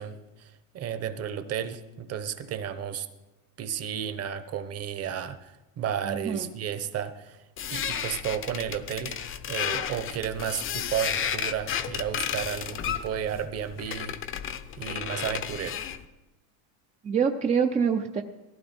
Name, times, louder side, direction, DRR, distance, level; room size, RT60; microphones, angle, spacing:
voice 1, 0.0-3.1 3.6-7.4 7.7-14.2 14.8-15.8, right 9 dB, 30° right, 11 dB, 1.1 m, -33 dB
voice 2, 6.0-6.5 17.0-18.2, right 6 dB, 15° right, 3 dB, 0.6 m, -25 dB
sound 1, 7.6-16.0, left 9 dB, 25° left, 0.8 m, -33 dB
17.5 x 15.5 x 4.4 m, 1.1 s
supercardioid pair, 140°, 48 cm